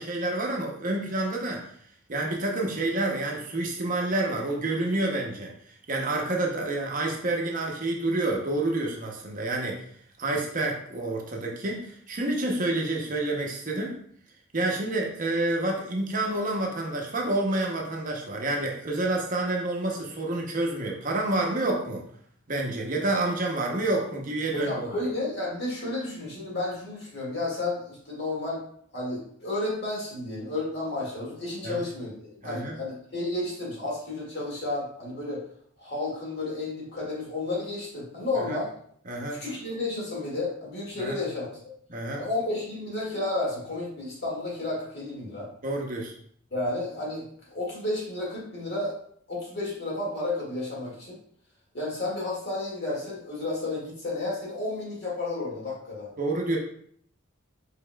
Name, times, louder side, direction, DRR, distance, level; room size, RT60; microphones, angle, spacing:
voice 1, 0.0-1.7 2.1-5.5 5.9-9.8 10.2-14.0 14.5-22.0 22.5-25.0 31.6-31.8 32.4-32.7 38.5-38.6 39.1-39.4 41.0-41.2 41.9-42.3 45.6-46.1 56.2-56.6, right 2 dB, 40° right, 0 dB, 0.7 m, -28 dB
voice 2, 24.5-28.6 28.9-35.4 35.8-38.7 39.3-41.7 42.2-45.5 46.5-48.9 49.3-51.2 51.7-56.1, left 2 dB, 50° left, -5 dB, 1.9 m, -32 dB
5.2 x 4.1 x 2.2 m, 0.62 s
head